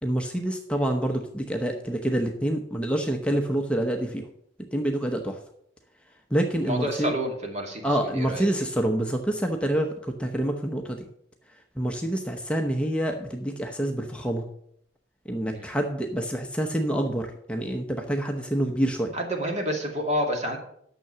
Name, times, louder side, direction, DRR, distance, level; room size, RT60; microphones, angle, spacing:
voice 1, 0.0-4.3 4.7-5.4 6.3-7.1 7.8-11.1 11.8-14.5 15.3-19.2, right 1 dB, 5° left, 3 dB, 0.9 m, -27 dB
voice 2, 6.6-8.4 15.5-15.7 19.1-20.6, equal, 40° right, 2 dB, 2.4 m, -29 dB
9.4 x 6.8 x 6.8 m, 0.70 s
head